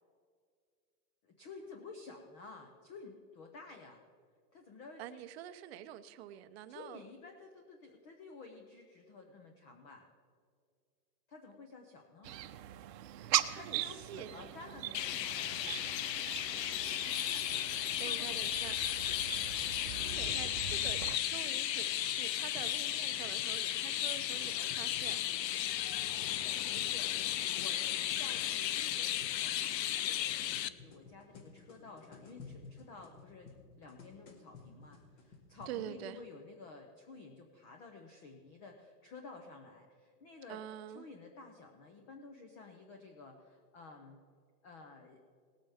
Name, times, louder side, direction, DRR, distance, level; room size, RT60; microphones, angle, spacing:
voice 1, 1.2-4.0 4.5-5.2 6.7-10.1 11.3-12.3 13.5-16.2 18.0-18.5 19.3-19.5 26.7-27.8 28.2-40.6 40.9-44.2 44.6-45.2, left 3 dB, 20° left, 0.5 m, -52 dB
voice 2, 5.0-7.0 13.3-14.4 17.7-18.8 20.1-25.2 35.7-36.2 40.5-41.1, right 11 dB, 40° right, 0.6 m, -47 dB
sound 1, 12.2-21.2, right 12 dB, 80° right, 0.8 m, -40 dB
Chirp tweet, 14.9-30.7, left 12 dB, 85° left, 0.7 m, -35 dB
sound 2, 17.5-20.8 21.8-25.1 26.0-29.4 30.3-35.7, left 4 dB, 45° left, 2.0 m, -56 dB
19.0 x 8.8 x 3.5 m
supercardioid pair, 155°, 49 cm